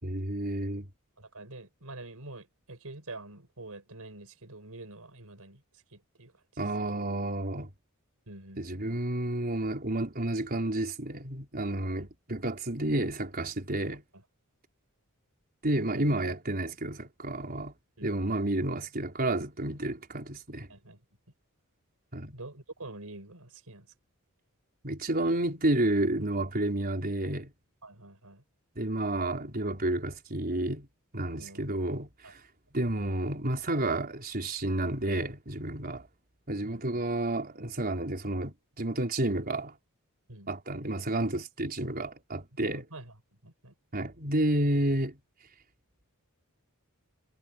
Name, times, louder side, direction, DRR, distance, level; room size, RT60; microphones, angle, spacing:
voice 1, 0.0-0.9 6.6-7.7 8.6-14.0 15.6-17.7 18.0-20.7 22.1-22.4 24.8-27.5 28.8-30.9 31.1-32.4 32.7-36.1 36.5-39.8 40.5-42.9 43.9-45.2, right 1 dB, 45° right, 4.6 m, -30 dB
voice 2, 1.2-6.3 8.3-9.0 12.0-12.1 14.1-14.2 15.9-16.1 18.0-18.1 20.7-21.0 22.3-23.9 27.8-28.4 31.3-31.7 32.2-32.3 35.9-36.0 36.6-36.8 40.3-40.5 42.7-43.1 43.4-43.7, right 2 dB, 75° right, 5.0 m, -46 dB
head